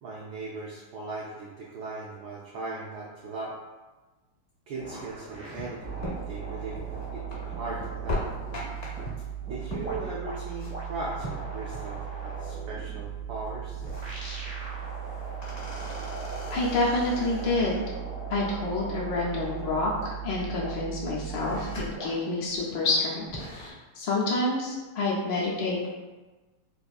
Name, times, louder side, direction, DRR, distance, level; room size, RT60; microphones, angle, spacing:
voice 1, 0.0-3.6 4.7-8.3 9.5-13.8, right 3 dB, 80° right, -4 dB, 0.9 m, -38 dB
sound 1, 4.7-9.0 9.4-20.1 20.4-20.7 21.3-23.5, equal, 65° right, 0.5 m, -42 dB
sound 2, 5.4-12.1 12.4-12.5 12.8-13.1 13.4-14.4 14.8-18.0 19.1-20.0 20.5-20.9 21.2-22.1 22.5-22.6 23.0-23.7, left 1 dB, 55° left, 0.9 m, -39 dB
sound 3, 5.8-21.8, right 11 dB, 30° left, 0.6 m, -38 dB
voice 2, 16.5-17.8 18.3-23.2 23.5-25.9, left 2 dB, 70° left, -5 dB, 1.2 m, -28 dB
4.2 x 2.5 x 2.3 m, 1.2 s
omnidirectional pair, 2.3 m